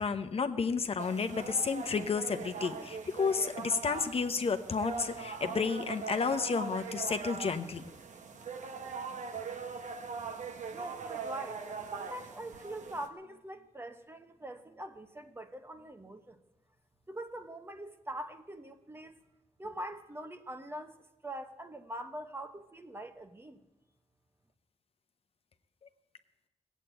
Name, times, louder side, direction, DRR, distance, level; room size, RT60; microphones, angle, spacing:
voice 1, 0.0-7.8, left 5 dB, 50° left, 0.9 m, -31 dB
sound 1, 1.0-13.1, right 5 dB, 75° right, 1.2 m, -41 dB
voice 2, 10.7-11.6 11.9-16.4 17.1-19.2 19.6-21.0 21.2-23.7, right 1 dB, 20° right, 1.0 m, -43 dB
18.0 x 8.3 x 9.2 m
wide cardioid pair, 110°, 13 cm